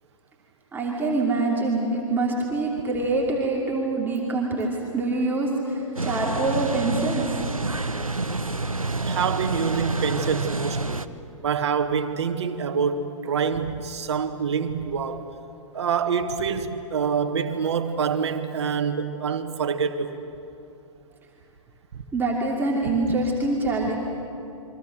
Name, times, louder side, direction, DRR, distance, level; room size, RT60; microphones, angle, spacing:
voice 1, 0.7-7.4 22.1-24.0, right 2 dB, 10° right, 2.8 m, -25 dB
sound 1, 6.0-11.1, right 2 dB, 90° right, 0.8 m, -28 dB
voice 2, 9.0-11.1 11.4-15.3 15.7-20.2 21.9-22.0, right 6 dB, 55° right, 1.7 m, -26 dB
28.5 x 24.0 x 6.5 m
figure-of-eight pair, 110°, 17 cm